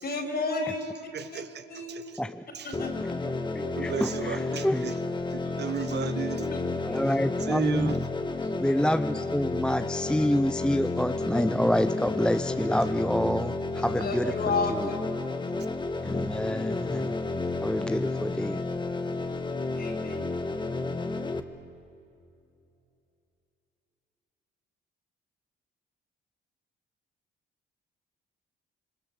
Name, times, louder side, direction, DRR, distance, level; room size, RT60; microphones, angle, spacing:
voice 1, 0.0-0.9 1.3-1.4 1.7-2.0 2.6-2.9 6.3-6.4 14.0-14.7 19.8-20.2, left 3 dB, 50° left, 4 dB, 4.9 m, -31 dB
voice 2, 1.1-2.2 2.5-2.8 3.6-4.9 5.3-6.4 7.5-8.0 8.4-8.5 15.6-15.7, right 8 dB, 60° right, 11 dB, 1.3 m, -34 dB
sound 1, 2.7-21.4, left 3 dB, 25° left, 1.5 m, -31 dB
voice 3, 3.0-5.0 6.9-7.9 8.6-14.9 16.0-17.1 17.6-18.6, equal, 5° left, 10 dB, 0.6 m, -28 dB
27.0 x 23.0 x 7.9 m, 2.7 s
cardioid pair, 90°, 20 cm